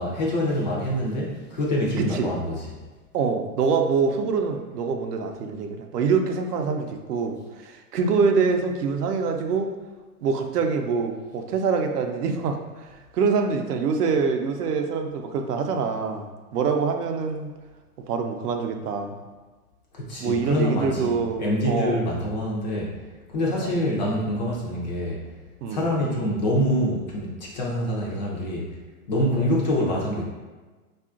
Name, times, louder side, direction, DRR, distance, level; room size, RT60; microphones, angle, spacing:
voice 1, 0.0-2.8 19.9-23.0 23.3-25.2 25.7-28.8 29.1-30.2, left 1 dB, 30° left, -3 dB, 0.4 m, -26 dB
voice 2, 2.0-2.3 3.1-9.7 10.2-16.3 16.5-17.5 18.1-19.2 20.2-22.0 23.6-23.7 25.6-25.9, right 5 dB, 75° right, 4 dB, 0.6 m, -25 dB
3.6 x 2.4 x 2.4 m, 1.3 s
hypercardioid pair, 125°, 47 cm